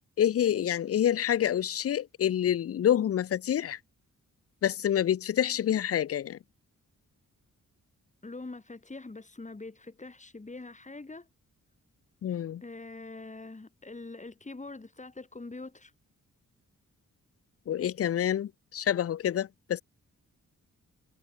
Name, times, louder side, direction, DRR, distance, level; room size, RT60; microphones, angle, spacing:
voice 1, 0.2-3.8 4.6-6.4 12.2-12.6 17.7-19.8, left 10 dB, 50° left, 0.5 m, -27 dB
voice 2, 8.2-11.3 12.6-15.9, left 3 dB, 25° left, 4.1 m, -44 dB
wide cardioid pair, 95°, 31 cm